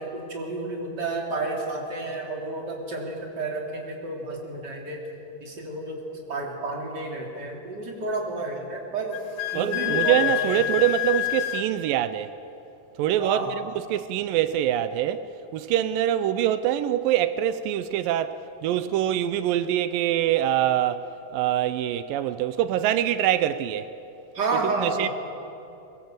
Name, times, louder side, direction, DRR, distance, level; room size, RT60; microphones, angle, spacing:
voice 1, 0.0-5.0 5.4-6.0 6.3-9.2 9.5-10.2 10.4-10.6 13.2-13.5 24.3-25.1, right 3 dB, 30° right, 3.7 m, -30 dB
Wind instrument woodwind instrument, 9.1-11.7, left 16 dB, 85° left, 2.6 m, -27 dB
voice 2, 9.6-12.3 13.0-15.3 15.5-23.9 24.6-25.1, right 11 dB, 90° right, 2.4 m, -24 dB
23.0 x 22.5 x 7.9 m
omnidirectional pair, 3.9 m